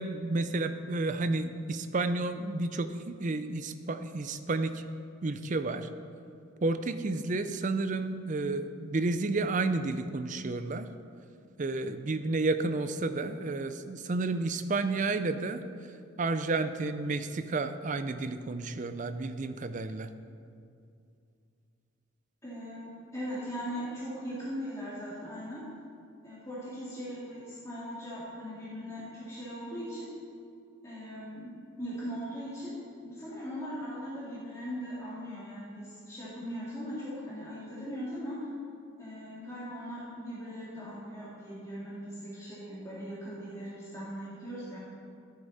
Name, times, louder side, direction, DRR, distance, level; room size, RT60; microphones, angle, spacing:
voice 1, 0.0-4.8 5.2-5.9 6.6-10.9 11.6-15.6 16.2-20.1, right 3 dB, 35° right, 10 dB, 0.4 m, -31 dB
voice 2, 22.4-25.6 26.2-30.1 30.8-31.5 31.8-32.7 33.0-38.5 39.0-44.8, equal, 15° left, -10 dB, 2.2 m, -39 dB
13.0 x 8.4 x 4.1 m, 2.5 s
head